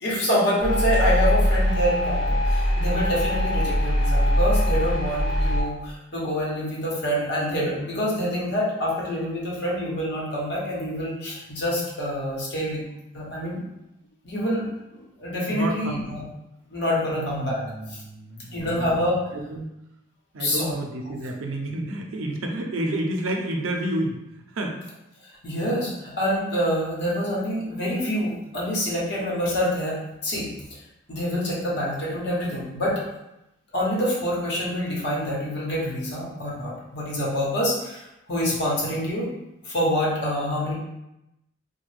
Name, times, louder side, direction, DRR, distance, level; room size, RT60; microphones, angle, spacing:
voice 1, 0.0-12.8 13.1-13.6 14.2-14.7 15.2-16.2 16.7-17.6 17.9-18.0 18.5-19.2 20.4-20.7 25.4-30.5 31.1-33.0 33.7-39.3 39.6-40.7, equal, 55° left, -5 dB, 1.0 m, -26 dB
sound 1, 0.6-5.6, equal, 20° left, 0.7 m, -22 dB
voice 2, 15.5-16.2 17.1-19.1 19.3-19.7 20.3-24.9, right 1 dB, 90° right, 2 dB, 0.5 m, -30 dB
3.2 x 2.2 x 3.3 m, 0.90 s
head